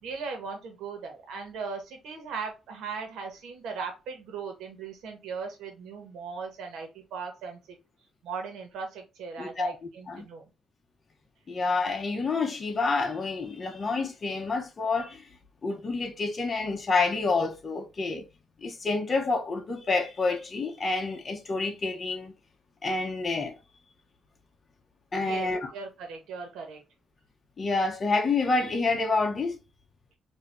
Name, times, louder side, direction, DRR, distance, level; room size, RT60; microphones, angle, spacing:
voice 1, 0.0-7.6 8.2-10.5 25.2-26.8, right 5 dB, 85° right, 1.5 m, -38 dB
voice 2, 9.4-9.7 10.1-10.3 11.5-15.2 15.6-18.3 18.6-22.3 22.8-23.5 25.1-25.7 27.6-29.6, left 3 dB, 40° left, 1.0 m, -28 dB
4.7 x 2.8 x 2.7 m
cardioid pair, 90°, 0 cm